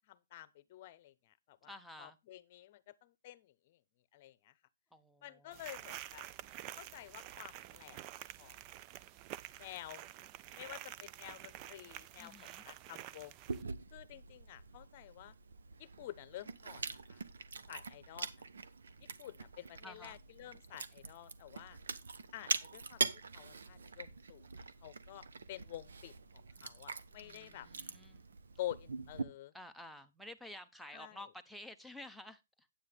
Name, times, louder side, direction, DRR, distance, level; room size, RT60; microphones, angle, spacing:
voice 1, 0.1-3.8 4.1-4.5 5.2-6.3 6.8-8.0 8.4-8.6 9.6-10.0 10.5-13.3 13.9-15.3 15.8-17.2 17.7-18.3 19.2-21.8 22.3-23.0 23.3-26.1 26.6-27.7 28.6-29.5 30.9-31.2, left 14 dB, 40° left, 0.9 m, -49 dB
voice 2, 1.6-2.2 4.9-5.9 12.2-12.6 19.8-20.2 27.2-28.3 29.5-32.7, left 1 dB, ahead, 0.8 m, -52 dB
sound 1, 5.5-13.6, right 13 dB, 30° right, 0.5 m, -49 dB
Chewing mastication, 13.5-29.2, right 4 dB, 90° right, 1.1 m, -43 dB
9.5 x 8.8 x 3.5 m
hypercardioid pair, 155°, 0 cm